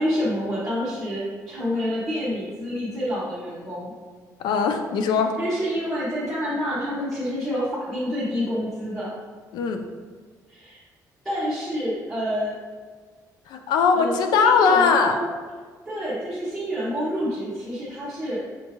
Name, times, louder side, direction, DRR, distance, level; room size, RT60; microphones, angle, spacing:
voice 1, 0.0-3.9 5.4-9.1 10.5-10.8 11.2-12.5 13.9-14.1 14.4-15.3 15.8-18.4, equal, ahead, -12 dB, 1.0 m, -28 dB
voice 2, 4.4-5.4 9.5-9.8 13.5-15.2, left 5 dB, 90° left, 6 dB, 0.4 m, -20 dB
5.8 x 2.6 x 2.9 m, 1.5 s
cardioid pair, 175°, 7 cm